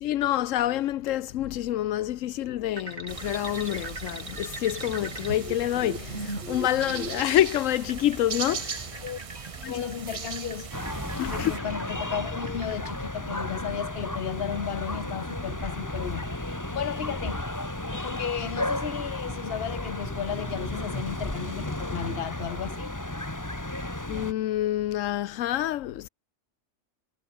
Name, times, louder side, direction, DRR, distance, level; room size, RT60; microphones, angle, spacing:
voice 1, 0.0-9.0 9.6-9.8 11.2-11.5 24.1-26.1, left 13 dB, 85° left, 1.0 m, -27 dB
sound 1, 2.8-13.0, right 2 dB, 55° right, 5.8 m, -40 dB
sound 2, 3.1-11.6, right 6 dB, 35° right, 0.6 m, -39 dB
voice 2, 9.7-10.7 11.3-17.5 17.9-23.0, left 8 dB, 55° left, 1.2 m, -34 dB
sound 3, 10.7-24.3, left 1 dB, 15° left, 2.1 m, -33 dB
omnidirectional pair, 1.3 m